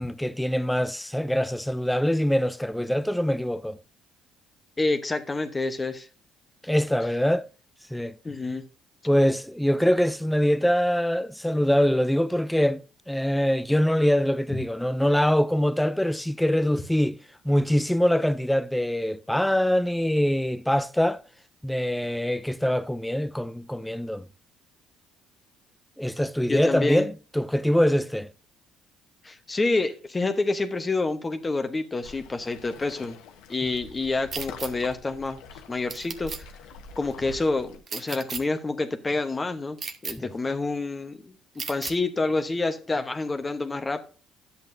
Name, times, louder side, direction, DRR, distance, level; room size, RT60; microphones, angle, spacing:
voice 1, 0.0-3.8 6.6-7.5 7.9-8.2 9.1-12.8 13.1-17.2 17.4-21.2 21.6-24.2 26.0-28.3, equal, 5° left, 0.4 m, -24 dB
voice 2, 4.8-6.1 8.2-8.6 26.5-27.0 29.2-33.2 33.5-35.4 35.7-36.5 37.0-41.3 41.7-44.0, left 3 dB, 25° left, 0.9 m, -28 dB
Waves surf, 32.0-37.8, left 4 dB, 85° left, 1.1 m, -45 dB
sound 1, 34.3-34.7 35.9-36.4 37.9-38.4 39.8-40.1 41.6-41.9, right 5 dB, 45° right, 1.0 m, -34 dB
10.5 x 8.2 x 2.6 m
supercardioid pair, 80°, 0 cm